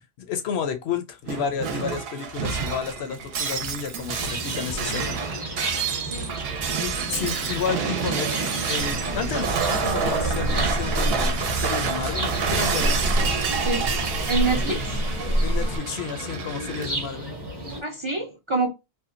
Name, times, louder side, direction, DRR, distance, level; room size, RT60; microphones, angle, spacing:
voice 1, 0.2-5.2 6.8-13.1 14.7-14.8 15.4-17.3, left 7 dB, 80° left, 0.9 m, -31 dB
Shatter, 1.3-16.9, right 6 dB, 75° right, 0.8 m, -28 dB
sound 1, 4.1-17.8, right 1 dB, 25° right, 0.7 m, -34 dB
sound 2, 8.8-15.8, equal, 35° left, 0.5 m, -28 dB
voice 2, 14.3-15.0 17.8-18.7, right 3 dB, 45° right, 0.4 m, -26 dB
2.7 x 2.2 x 2.4 m
omnidirectional pair, 1.1 m